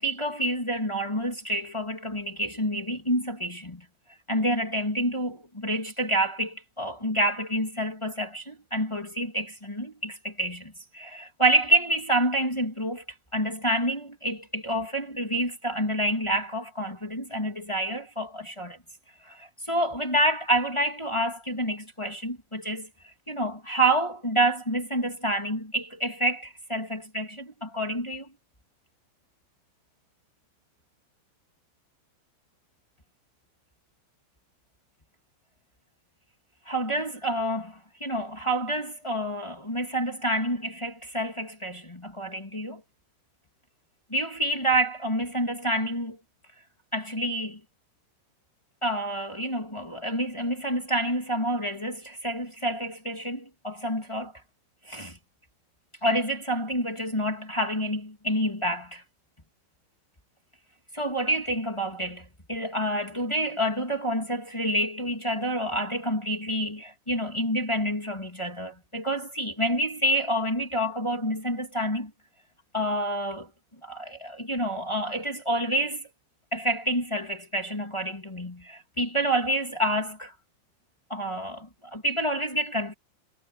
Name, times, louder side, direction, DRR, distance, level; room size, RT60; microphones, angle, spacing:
voice 1, 0.0-3.8 4.3-13.0 13.3-18.8 19.2-28.3 36.6-42.8 44.1-46.2 46.9-47.6 48.8-54.3 54.9-55.2 56.0-59.0 60.9-72.1 72.7-73.5 73.8-76.1 76.5-80.3 81.1-82.9, right 1 dB, 10° left, 1.6 m, -28 dB
omnidirectional pair, 5.4 m